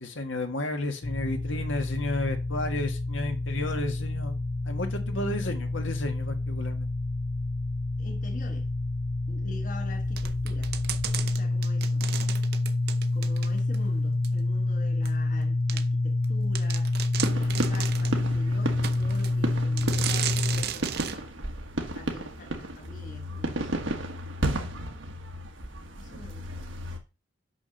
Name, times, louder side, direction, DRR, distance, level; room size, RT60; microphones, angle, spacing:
voice 1, 0.0-4.4 4.7-6.9, left 2 dB, 80° left, 1.7 m, -32 dB
sound 1, 1.0-20.7, left 2 dB, 25° left, 0.3 m, -28 dB
voice 2, 8.0-8.7 9.3-10.7 11.2-12.1 13.1-16.9 17.3-21.4 21.9-24.3 26.0-27.0, left 2 dB, 40° left, 1.3 m, -45 dB
sound 2, 10.2-13.8 14.2-14.3 15.0-15.1 15.7-15.8 16.2-16.3 16.5-18.2 18.8-19.3 19.8-21.2, right 9 dB, 50° right, 0.7 m, -35 dB
sound 3, 17.2-27.0, right 1 dB, 80° right, 1.4 m, -33 dB
6.2 x 6.0 x 6.5 m
head